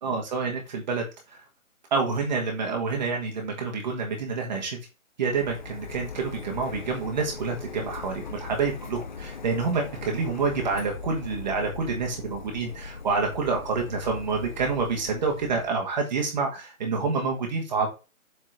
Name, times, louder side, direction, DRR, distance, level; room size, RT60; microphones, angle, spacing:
voice 1, 0.0-1.4 1.9-4.8 5.2-17.9, right 4 dB, 30° right, 1 dB, 1.7 m, -28 dB
Printer, 5.3-15.7, left 5 dB, 35° left, 0.7 m, -40 dB
7.9 x 4.3 x 4.0 m, 0.30 s
hypercardioid pair, 160°, 41 cm